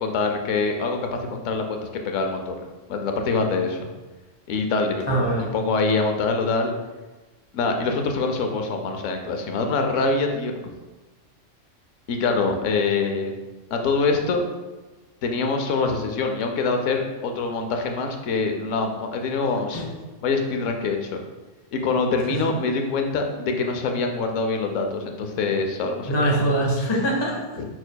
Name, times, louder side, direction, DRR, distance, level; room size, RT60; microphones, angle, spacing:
voice 1, 0.0-3.8 4.5-6.7 7.5-10.7 12.1-13.3 13.7-14.4 15.2-19.8 20.2-21.2 21.7-26.4 27.6-27.7, left 3 dB, 85° left, 4 dB, 0.9 m, -25 dB
voice 2, 5.1-5.5 19.7-19.9 22.3-22.4 26.1-27.4, right 1 dB, 25° left, -1 dB, 0.8 m, -23 dB
5.1 x 4.5 x 2.2 m, 1.2 s
omnidirectional pair, 1.3 m